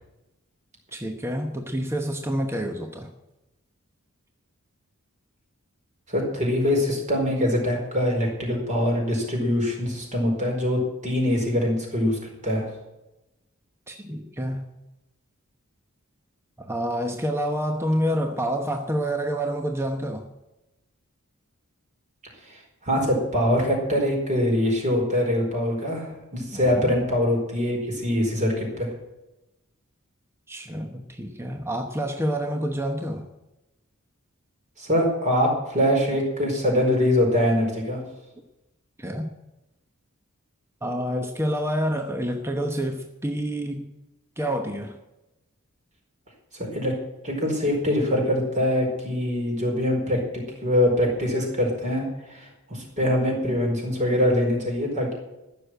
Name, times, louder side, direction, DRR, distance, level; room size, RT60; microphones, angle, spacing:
voice 1, 0.9-3.1 13.9-14.7 16.6-20.3 26.5-26.9 30.5-33.3 39.0-39.3 40.8-43.9 44.4-45.0, equal, 10° right, 4 dB, 1.0 m, -28 dB
voice 2, 6.1-12.6 22.8-28.9 34.8-38.0 46.5-46.9 47.2-50.2 50.6-55.1, left 1 dB, 35° right, 0 dB, 4.7 m, -23 dB
14.5 x 6.8 x 9.2 m, 0.97 s
head